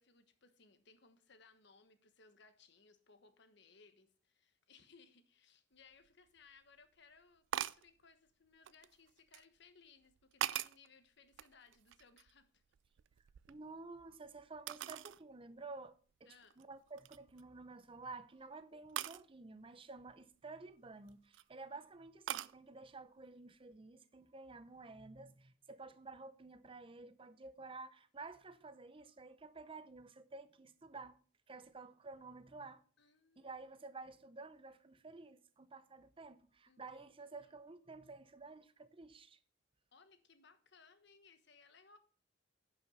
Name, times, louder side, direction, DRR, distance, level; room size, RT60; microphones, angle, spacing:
voice 1, 0.0-12.6 16.2-16.5 21.7-21.8 33.0-33.6 36.7-37.6 39.9-42.0, left 5 dB, 60° left, 1.2 m, -65 dB
sound 1, 6.0-6.1 7.5-7.9 8.6-9.4 10.1-10.9 11.3-12.4 12.7-14.0 14.7-15.2 15.7-15.8 16.4-16.6 17.0-17.4 19.0-19.2 20.9-21.4 22.3-22.6, right 11 dB, 65° right, 0.3 m, -42 dB
voice 2, 13.5-31.2 31.5-32.8 33.4-39.4, right 3 dB, 30° right, 0.6 m, -52 dB
10.5 x 5.6 x 5.4 m
head